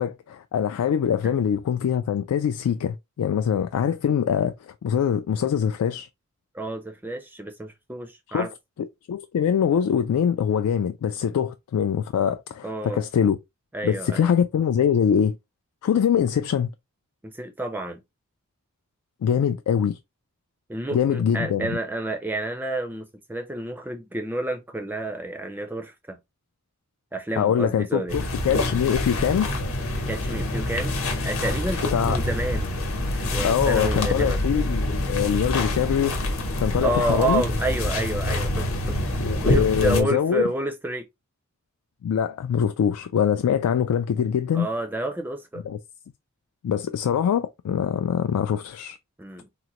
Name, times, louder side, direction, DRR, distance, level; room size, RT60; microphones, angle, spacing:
voice 1, 0.0-6.1 8.3-8.5 8.8-13.4 13.8-15.4 15.8-16.7 19.2-20.0 20.9-21.8 27.4-29.5 31.9-32.2 33.4-36.2 36.6-37.4 39.2-40.4 42.0-44.7 45.6-45.8 46.6-49.0, left 8 dB, 90° left, 0.3 m, -23 dB
voice 2, 6.5-8.5 12.6-13.0 13.7-14.3 17.2-18.0 20.7-26.2 27.1-28.2 30.1-32.7 33.1-34.4 36.8-38.6 39.4-41.1 44.5-45.6 49.2-49.5, right 2 dB, 10° right, 0.3 m, -29 dB
sound 1, 28.1-40.0, left 1 dB, 70° left, 0.9 m, -26 dB
3.8 x 2.1 x 2.9 m
head